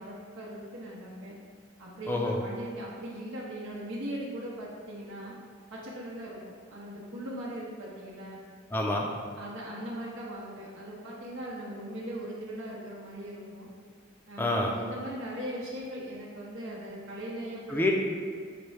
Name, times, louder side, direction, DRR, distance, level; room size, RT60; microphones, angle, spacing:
voice 1, 0.0-1.4 1.8-2.2 2.4-5.4 5.7-6.4 6.7-8.4 9.4-13.7 14.3-18.0, right 1 dB, 85° right, -6 dB, 0.7 m, -39 dB
voice 2, 8.7-9.1 14.4-14.7 17.7-18.0, left 1 dB, 10° left, 0 dB, 0.4 m, -27 dB
5.8 x 2.6 x 3.2 m, 2.1 s
head